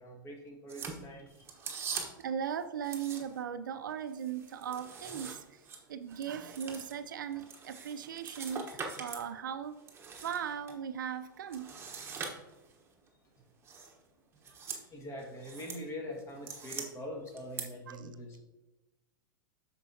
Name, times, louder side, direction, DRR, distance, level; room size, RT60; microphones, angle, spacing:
voice 1, 0.0-1.5 14.9-18.4, equal, 25° left, 1 dB, 1.8 m, -43 dB
sound 1, 0.7-2.3 2.8-3.5 3.9-9.3 9.6-10.7 11.5-12.8 13.6-13.9 14.3-14.8 15.2-15.8 16.2-16.9 17.4-17.6, right 5 dB, 20° right, 1.1 m, -43 dB
voice 2, 2.2-5.6 5.9-9.8 10.2-11.7 17.9-18.2, right 8 dB, 70° right, 11 dB, 0.4 m, -38 dB
13.0 x 4.5 x 2.8 m, 1.0 s
figure-of-eight pair, 90°, 11 cm